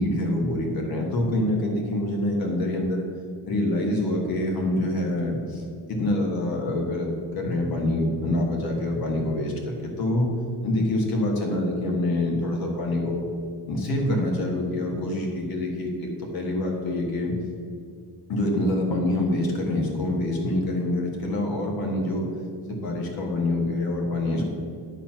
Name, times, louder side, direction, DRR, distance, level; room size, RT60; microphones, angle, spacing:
voice 1, 0.0-3.0 3.5-10.3 10.6-13.3 13.7-17.3 18.3-22.3 22.7-24.5, left 1 dB, 60° left, 0 dB, 1.6 m, -26 dB
9.9 x 4.5 x 5.8 m, 2.2 s
cardioid pair, 165°, 40 cm